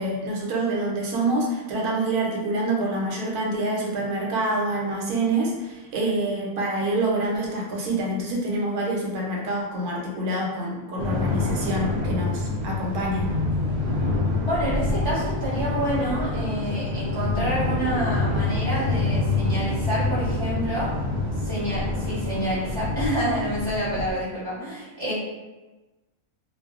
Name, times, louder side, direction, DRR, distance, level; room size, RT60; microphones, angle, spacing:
voice 1, 0.0-13.3, right 2 dB, 85° right, -2 dB, 1.1 m, -26 dB
sound 1, 11.0-24.1, left 2 dB, 65° right, 0.9 m, -26 dB
voice 2, 14.5-20.9 21.4-25.1, right 1 dB, 20° left, -11 dB, 0.6 m, -28 dB
2.5 x 2.0 x 2.3 m, 1.1 s
omnidirectional pair, 1.6 m